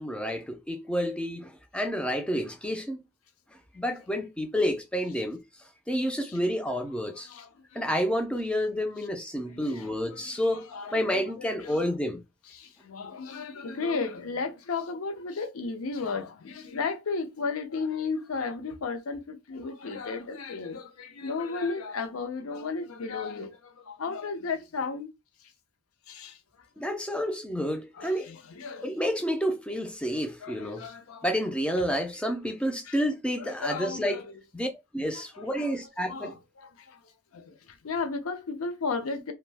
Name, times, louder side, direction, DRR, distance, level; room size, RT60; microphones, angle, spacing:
voice 1, 0.0-3.0 3.7-5.4 5.9-7.3 7.7-12.2 26.8-28.3 28.8-30.9 31.2-34.2 34.5-34.7 34.9-36.3, equal, 5° left, 0.3 m, -29 dB
voice 2, 7.1-8.0 9.4-11.9 12.5-25.1 26.1-26.4 27.9-28.9 30.4-31.2 32.8-33.0 33.4-34.4 35.1-35.7 36.0-39.3, left 4 dB, 85° left, 0.5 m, -35 dB
2.6 x 2.1 x 3.3 m
head